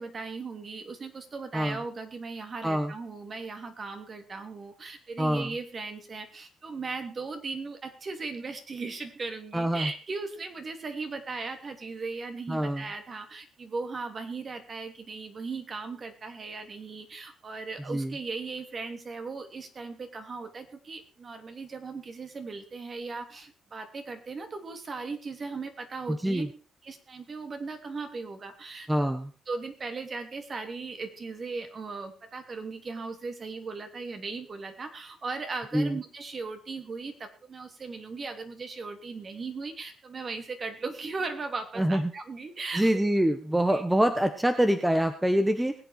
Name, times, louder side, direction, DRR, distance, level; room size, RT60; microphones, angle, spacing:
voice 1, 0.0-26.5 26.8-29.1 29.5-42.9 43.7-43.8, right 4 dB, 40° right, 6 dB, 3.1 m, -38 dB
voice 2, 5.2-5.5 9.5-9.9 12.5-12.8 17.9-18.1 26.1-26.5 28.9-29.3 35.7-36.0 41.8-42.1 42.7-45.7, right 1 dB, 10° right, 8 dB, 1.5 m, -25 dB
21.0 x 8.3 x 4.7 m, 0.37 s
cardioid pair, 90°, 0 cm